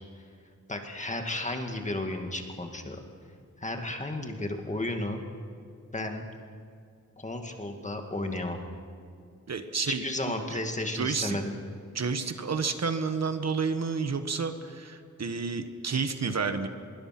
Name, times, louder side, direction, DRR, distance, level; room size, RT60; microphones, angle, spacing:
voice 1, 0.7-3.0 3.6-5.2 5.9-6.2 7.2-8.6 9.8-11.6, left 1 dB, 25° left, 4 dB, 2.1 m, -33 dB
voice 2, 9.5-10.0 10.5-10.6 10.9-11.4 11.9-16.7, right 5 dB, 60° right, 8 dB, 1.3 m, -30 dB
25.0 x 22.5 x 6.0 m, 2.4 s
wide cardioid pair, 145°, 31 cm